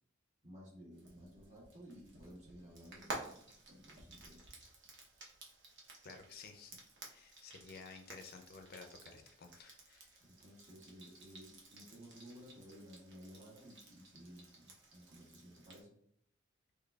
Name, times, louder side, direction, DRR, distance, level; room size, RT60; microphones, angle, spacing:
voice 1, 0.4-4.5 10.3-16.0, equal, 35° right, -3 dB, 1.2 m, -56 dB
Frying (food), 1.0-15.8, right 2 dB, 60° right, 0.8 m, -53 dB
voice 2, 6.0-6.8 7.1-10.2, left 4 dB, 50° left, 5 dB, 0.4 m, -54 dB
3.8 x 3.1 x 2.3 m, 0.69 s
head